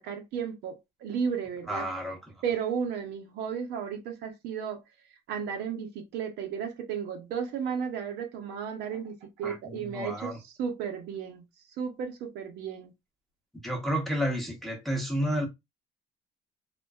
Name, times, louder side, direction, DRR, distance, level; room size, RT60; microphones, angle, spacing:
voice 1, 0.0-1.8 2.4-4.8 5.3-10.3 10.6-11.4 11.8-12.9, right 7 dB, 80° right, 0.7 m, -34 dB
voice 2, 1.7-2.3 9.4-10.4 13.6-15.5, equal, ahead, 0.7 m, -31 dB
2.5 x 2.2 x 2.2 m
cardioid pair, 110°, 17 cm